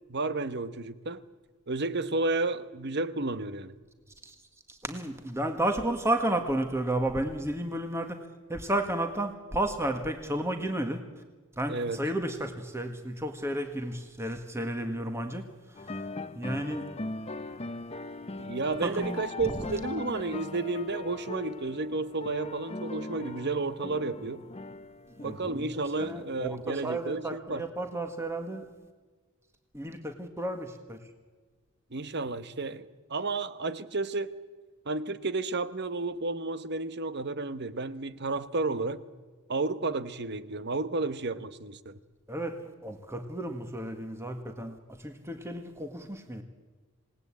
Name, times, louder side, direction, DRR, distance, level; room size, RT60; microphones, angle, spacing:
voice 1, 0.1-1.2 1.7-3.7 11.7-12.0 18.4-24.4 25.2-27.6 31.9-34.3 34.9-39.0 39.5-42.0, right 3 dB, 50° right, 13 dB, 1.1 m, -32 dB
voice 2, 4.7-8.2 8.5-11.0 11.6-16.0 16.4-16.9 18.8-19.7 25.1-28.7 29.7-31.0 42.3-46.4, right 1 dB, 10° right, 5 dB, 1.7 m, -32 dB
sound 1, 15.8-27.1, left 2 dB, 30° left, 0.8 m, -40 dB
27.5 x 18.5 x 8.6 m, 1.4 s
head